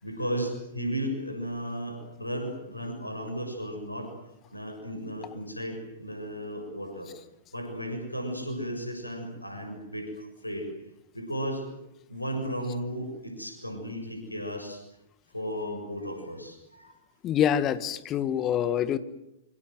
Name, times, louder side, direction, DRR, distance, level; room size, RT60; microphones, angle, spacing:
voice 1, 0.0-4.1 4.4-7.1 7.5-10.7 11.1-11.6 12.1-14.8 15.3-17.0, equal, 85° left, 5 dB, 6.8 m, -34 dB
voice 2, 17.2-19.0, left 9 dB, 25° left, 14 dB, 1.6 m, -26 dB
26.5 x 25.0 x 7.9 m, 0.89 s
figure-of-eight pair, 105°, 0 cm